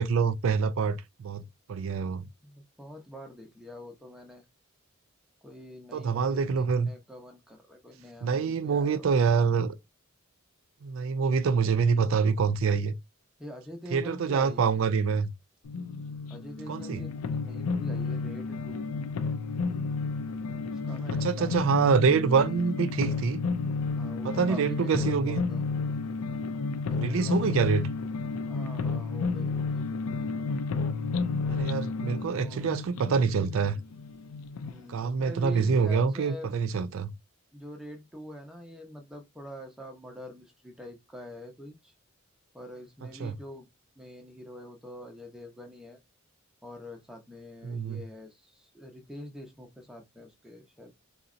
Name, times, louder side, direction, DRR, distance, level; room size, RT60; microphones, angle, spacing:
voice 1, 0.0-1.4 1.7-2.3 5.9-6.9 8.2-9.8 10.8-12.9 13.9-15.3 16.7-17.0 21.2-23.4 24.2-25.4 27.0-27.9 31.5-33.8 34.9-37.1 43.2-43.4 47.6-48.0, right 5 dB, 65° right, 0.3 m, -26 dB
voice 2, 2.4-4.4 5.4-9.1 13.4-15.0 16.3-17.1 17.4-18.8 20.6-21.6 22.4-22.5 23.9-25.6 26.9-27.6 28.5-29.8 32.2-32.7 34.6-36.6 37.5-41.9 42.5-43.7 44.0-46.0 46.6-50.9, left 1 dB, 5° right, 0.6 m, -45 dB
sound 1, 15.6-34.8, left 4 dB, 80° left, 0.4 m, -31 dB
3.9 x 2.0 x 2.5 m
head